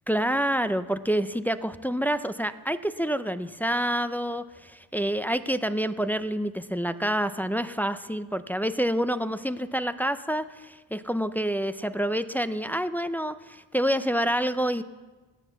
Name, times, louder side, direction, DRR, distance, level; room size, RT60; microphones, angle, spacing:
voice 1, 0.1-14.8, equal, 5° left, 11 dB, 0.4 m, -27 dB
17.5 x 10.5 x 6.9 m, 1.2 s
cardioid pair, 115°, 49 cm